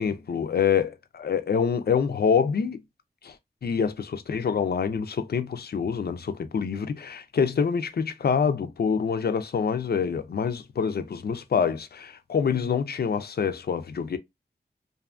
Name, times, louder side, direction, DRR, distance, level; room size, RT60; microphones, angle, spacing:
voice 1, 0.0-2.8 3.2-3.3 3.6-14.2, left 6 dB, 65° left, 0.4 m, -26 dB
2.6 x 2.3 x 2.4 m
cardioid pair, 40°, 17 cm